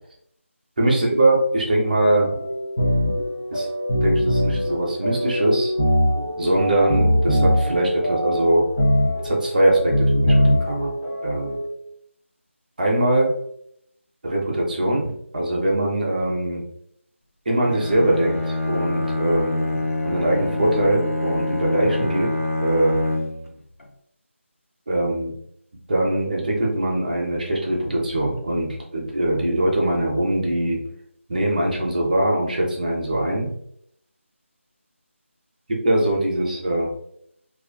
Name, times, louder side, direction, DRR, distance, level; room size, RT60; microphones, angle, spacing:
voice 1, 0.8-2.3 3.5-3.7 4.0-5.7 6.4-8.6 9.2-10.9 11.2-11.6 12.8-13.4 14.2-16.6 17.5-19.7 20.0-22.3 22.6-22.9 24.9-25.3 25.9-30.8 31.3-33.5 35.8-36.9, right 1 dB, 40° right, -2 dB, 0.6 m, -22 dB
sound 1, 2.2-11.7, equal, 25° left, 0.7 m, -22 dB
Bowed string instrument, 17.6-23.6, left 2 dB, 80° left, 0.5 m, -25 dB
2.4 x 2.3 x 2.2 m, 0.72 s
figure-of-eight pair, 160°, 7 cm